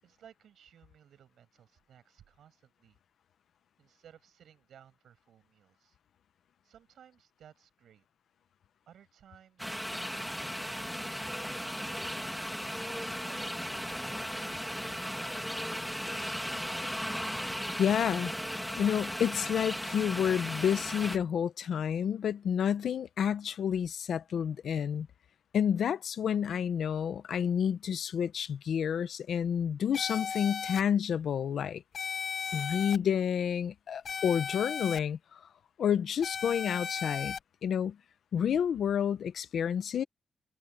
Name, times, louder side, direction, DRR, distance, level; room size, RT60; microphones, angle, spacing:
voice 1, 0.0-3.0 3.8-6.0 6.6-8.0 8.9-12.5, right 9 dB, 80° right, 8.0 m, -59 dB
sound 1, 9.6-21.2, equal, ahead, 2.3 m, -36 dB
voice 2, 17.8-18.3 18.8-25.1 25.5-31.8 32.5-35.4 35.8-37.4 37.6-38.0 38.3-40.0, left 8 dB, 65° left, 0.8 m, -29 dB
sound 2, 29.9-30.8 31.9-33.0 34.1-35.0 36.2-37.4, left 6 dB, 45° left, 0.3 m, -36 dB
wide cardioid pair, 170°, 0 cm